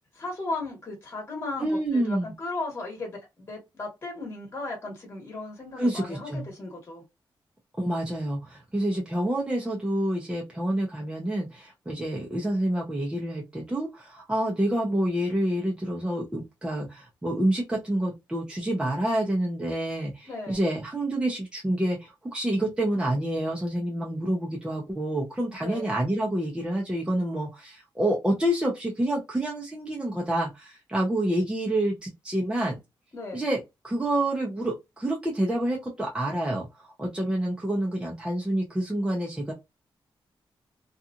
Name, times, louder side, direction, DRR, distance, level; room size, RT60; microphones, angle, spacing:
voice 1, 0.1-3.2 3.5-7.0 20.3-20.6 25.6-25.9 33.1-33.4, left 2 dB, 30° left, 0 dB, 1.2 m, -36 dB
voice 2, 1.6-2.3 5.8-6.5 7.8-32.8 33.3-39.5, right 1 dB, 10° right, -2 dB, 0.6 m, -28 dB
2.8 x 2.4 x 2.4 m, 0.21 s
wide cardioid pair, 165°, 8 cm